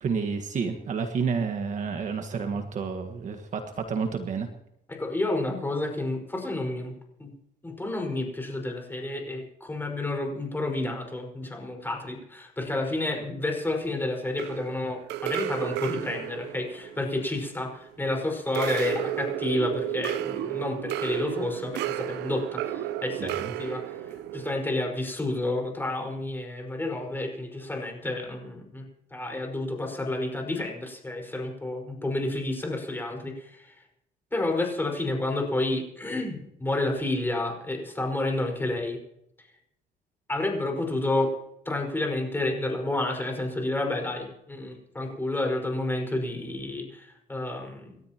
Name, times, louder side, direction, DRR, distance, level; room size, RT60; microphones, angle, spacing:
voice 1, 0.0-4.5 23.2-23.5, right 5 dB, 45° right, 6 dB, 1.6 m, -30 dB
voice 2, 4.9-6.9 7.2-7.3 7.6-23.3 23.6-24.1 24.3-28.9 29.1-33.8 34.3-39.0 40.3-41.3 41.7-48.0, left 2 dB, 10° left, 2 dB, 5.2 m, -30 dB
sound 1, 14.4-18.0 18.5-24.6, right 12 dB, 85° right, 0.7 m, -33 dB
28.5 x 13.0 x 3.0 m, 0.81 s
cardioid pair, 110°, 17 cm